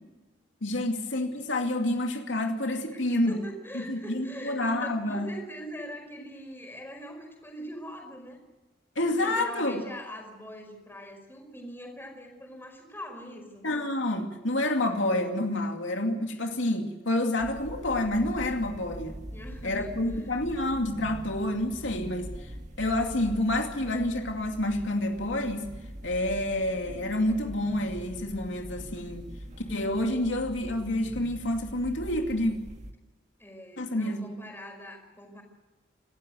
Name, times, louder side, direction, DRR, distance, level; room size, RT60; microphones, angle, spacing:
voice 1, 0.6-3.4 3.7-5.3 9.0-9.8 13.6-19.2 19.6-22.3 22.8-25.7 26.0-29.3 29.7-32.5 33.8-34.3, left 1 dB, 85° left, 3 dB, 2.6 m, -28 dB
voice 2, 3.3-8.4 9.1-13.7 19.3-20.4 33.4-35.4, equal, 10° left, 2 dB, 5.1 m, -42 dB
sound 1, 17.4-32.9, equal, 40° right, 1.7 m, -43 dB
28.0 x 13.0 x 8.0 m, 1.2 s
head